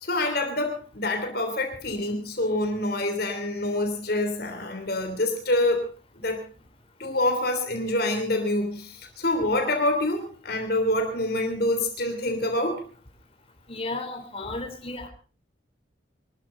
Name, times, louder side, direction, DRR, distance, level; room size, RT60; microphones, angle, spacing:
voice 1, 0.0-5.9 6.2-6.4 7.0-12.8, left 1 dB, 50° left, 5 dB, 3.2 m, -26 dB
voice 2, 13.7-15.1, left 2 dB, 30° left, 3 dB, 3.5 m, -33 dB
24.0 x 13.0 x 3.8 m, 0.37 s
head